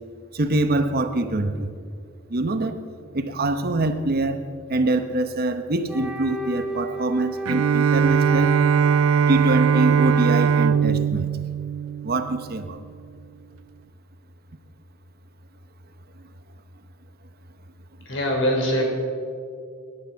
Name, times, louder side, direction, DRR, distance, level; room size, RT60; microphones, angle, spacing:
voice 1, 0.3-1.7 2.3-2.7 3.1-4.4 4.7-8.5 9.3-11.3 12.0-12.8, right 2 dB, 45° right, 9 dB, 0.9 m, -24 dB
Wind instrument woodwind instrument, 5.9-11.0, equal, 5° right, 1.4 m, -33 dB
Bowed string instrument, 7.5-12.7, right 7 dB, 75° right, 0.3 m, -20 dB
voice 2, 18.1-18.8, equal, 65° left, 0 dB, 4.1 m, -22 dB
20.5 x 11.0 x 5.8 m, 2.3 s
head